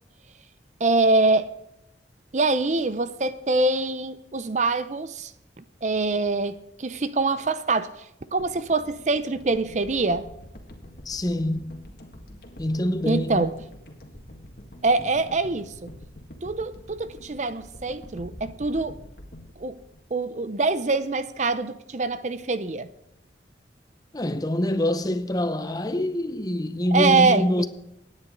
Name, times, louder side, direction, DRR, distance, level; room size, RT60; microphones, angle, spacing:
voice 1, 0.8-1.5 2.3-5.3 5.6-7.9 8.3-10.3 13.1-13.5 14.8-15.9 16.4-19.0 19.6-19.8 20.1-22.9 26.9-27.7, right 3 dB, 40° right, 0.6 m, -24 dB
sound 1, 8.4-20.7 21.0-21.2, equal, 55° left, 1.9 m, -46 dB
voice 2, 11.1-11.8 12.6-13.6 24.1-27.7, left 1 dB, 20° left, 0.6 m, -25 dB
24.0 x 9.8 x 4.0 m
head